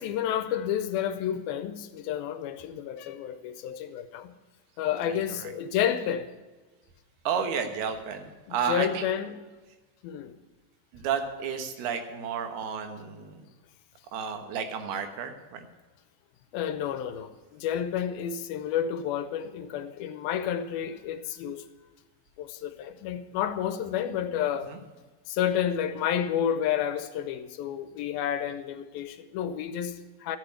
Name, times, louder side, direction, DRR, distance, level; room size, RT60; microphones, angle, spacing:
voice 1, 0.0-4.3 4.8-6.3 8.5-9.4 10.0-10.4 16.5-21.7 22.4-24.7 25.3-30.4, left 9 dB, 80° left, 2.5 m, -30 dB
voice 2, 5.0-5.5 7.2-9.0 10.9-13.4 14.1-15.7 24.7-24.8, right 7 dB, 85° right, 3.3 m, -32 dB
13.5 x 6.9 x 9.8 m
omnidirectional pair, 4.4 m